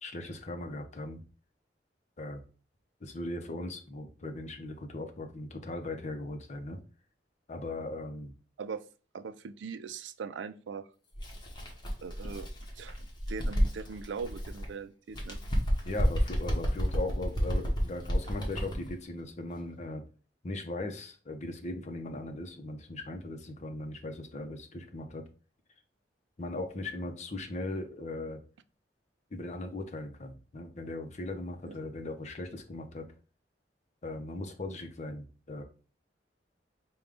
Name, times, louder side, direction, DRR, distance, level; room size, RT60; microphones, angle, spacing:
voice 1, 0.0-1.2 2.2-2.4 3.0-6.8 7.5-8.3 15.8-20.0 20.4-25.2 26.4-28.4 29.3-33.0 34.0-35.6, left 2 dB, 40° left, 5 dB, 0.7 m, -38 dB
voice 2, 9.1-10.9 12.0-12.5 12.8-13.0 13.3-15.4 31.7-31.8, right 5 dB, 90° right, 13 dB, 0.4 m, -40 dB
Bird, 11.1-14.7 15.1-18.9, equal, 25° left, 1.0 m, -31 dB
4.9 x 2.3 x 3.6 m, 0.36 s
head